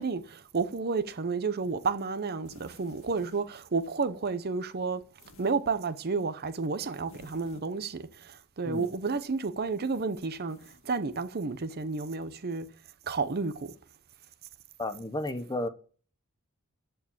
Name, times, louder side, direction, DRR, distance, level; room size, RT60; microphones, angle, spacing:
voice 1, 0.0-5.0 5.4-12.7 13.1-13.7, right 4 dB, 45° right, 0.7 m, -31 dB
sound 1, 2.4-3.5 5.2-5.5 7.1-7.6 8.7-9.0 10.5-10.8, left 2 dB, 65° left, 1.8 m, -55 dB
voice 2, 14.8-15.7, left 1 dB, 20° left, 0.8 m, -32 dB
13.5 x 4.7 x 7.2 m
head